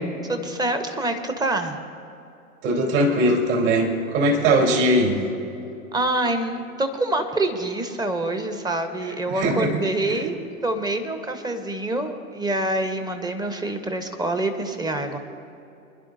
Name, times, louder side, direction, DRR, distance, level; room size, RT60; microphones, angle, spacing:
voice 1, 0.3-1.8 5.9-10.4 10.6-15.2, right 2 dB, 10° right, 7 dB, 1.0 m, -26 dB
voice 2, 2.6-5.2 9.3-9.8 10.1-10.2, right 1 dB, 55° right, -1 dB, 3.7 m, -20 dB
27.0 x 11.0 x 2.7 m, 2.8 s
hypercardioid pair, 105°, 42 cm